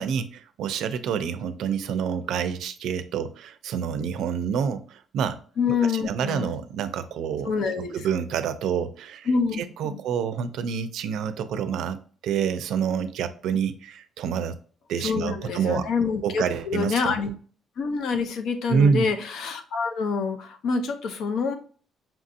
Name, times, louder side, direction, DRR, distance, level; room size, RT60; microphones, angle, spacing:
voice 1, 0.0-5.4 5.7-7.5 7.9-9.3 9.6-14.6 14.9-15.8 16.2-17.2 18.7-19.1, right 7 dB, 75° right, 0.4 m, -27 dB
voice 2, 5.6-6.5 7.4-8.1 9.3-10.0 15.0-17.3 17.8-21.6, left 5 dB, 70° left, 0.6 m, -26 dB
5.6 x 2.7 x 2.5 m
cardioid pair, 150°, 0 cm